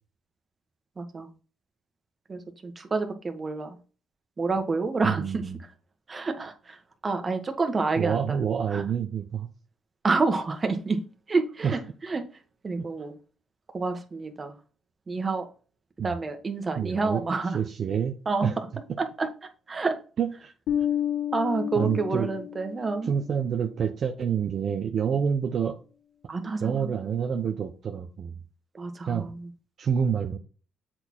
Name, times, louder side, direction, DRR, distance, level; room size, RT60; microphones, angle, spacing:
voice 1, 1.0-1.3 2.3-3.8 4.4-5.5 6.1-8.4 8.7-8.8 10.0-11.0 11.3-12.2 12.6-13.1 13.7-14.5 15.1-15.5 16.0-17.6 18.2-18.7 19.0-19.3 19.7-20.0 21.3-23.1 26.3-26.9 28.7-29.5, right 3 dB, 30° right, 6 dB, 1.6 m, -28 dB
voice 2, 5.0-5.6 8.0-9.5 11.6-11.8 12.8-12.9 16.0-16.1 16.8-17.2 17.5-18.1 18.4-18.5 20.2-20.5 21.8-22.3 23.1-25.8 26.6-28.3 29.1-29.3 29.8-30.4, right 7 dB, 55° right, 4 dB, 0.8 m, -27 dB
Bass guitar, 20.7-23.1, left 10 dB, 85° left, 1.3 m, -30 dB
7.7 x 4.3 x 4.5 m, 0.37 s
cardioid pair, 90°, 0 cm